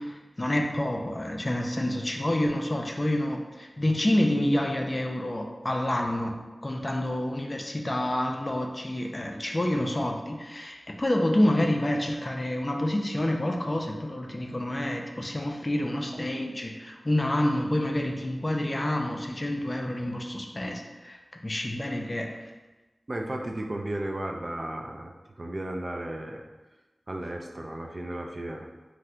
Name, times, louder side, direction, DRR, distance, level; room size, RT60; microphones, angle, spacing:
voice 1, 0.0-22.5, left 1 dB, 35° left, 2 dB, 0.4 m, -28 dB
voice 2, 23.1-26.4 27.1-28.7, right 1 dB, 45° right, 2 dB, 0.3 m, -34 dB
2.7 x 2.4 x 3.3 m, 1.2 s
wide cardioid pair, 55°, 0 cm